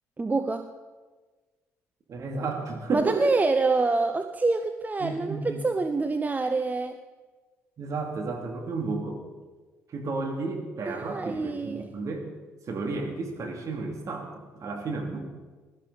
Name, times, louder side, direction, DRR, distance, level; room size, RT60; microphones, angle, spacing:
voice 1, 0.2-0.7 2.9-7.0 10.9-11.9, right 3 dB, 25° right, 8 dB, 0.7 m, -26 dB
voice 2, 2.1-3.4 5.0-5.6 7.8-9.2 9.9-12.3 12.7-15.2, right 3 dB, 50° right, 2 dB, 2.6 m, -32 dB
16.5 x 13.0 x 4.0 m, 1.3 s
hypercardioid pair, 50°, 7 cm